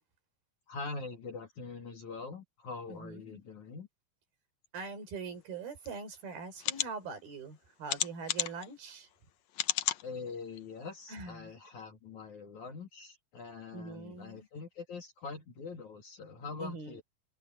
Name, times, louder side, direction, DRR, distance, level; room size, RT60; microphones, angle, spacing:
voice 1, 0.7-3.9 10.0-17.0, left 4 dB, 55° left, 3.4 m, -43 dB
voice 2, 2.9-3.4 4.7-9.1 11.1-11.5 13.7-14.5 16.6-17.0, right 4 dB, 80° right, 6.2 m, -43 dB
sound 1, 5.8-5.9 6.6-6.9 7.9-8.7 9.5-10.0 10.6-10.7 11.0-11.1, left 12 dB, 75° left, 1.6 m, -32 dB
open air
omnidirectional pair, 4.2 m